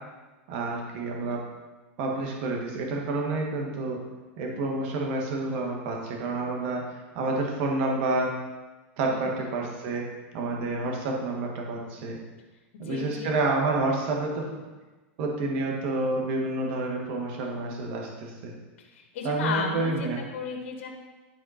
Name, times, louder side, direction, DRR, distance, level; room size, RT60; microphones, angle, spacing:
voice 1, 0.5-1.4 2.0-4.0 4.4-6.8 7.2-8.3 9.0-10.1 10.3-12.2 12.8-14.5 15.2-18.5 19.2-20.2, right 2 dB, 55° right, 0 dB, 1.8 m, -29 dB
voice 2, 9.1-9.5 12.8-13.3 18.8-20.9, left 5 dB, 70° left, 1 dB, 1.4 m, -34 dB
10.5 x 4.3 x 4.3 m, 1.2 s
supercardioid pair, 140°, 7 cm